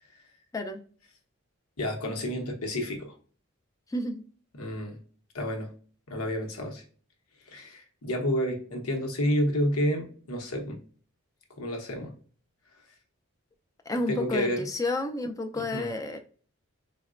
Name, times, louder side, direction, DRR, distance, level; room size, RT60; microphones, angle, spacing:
voice 1, 1.8-3.1 4.6-5.0 5.3-5.7 6.1-6.8 7.5-10.8 11.6-12.1 14.1-14.6 15.5-15.9, equal, 85° left, 3 dB, 0.9 m, -30 dB
voice 2, 3.9-4.2 13.9-16.2, left 2 dB, 15° left, 5 dB, 0.3 m, -31 dB
3.9 x 2.1 x 2.4 m, 0.43 s
head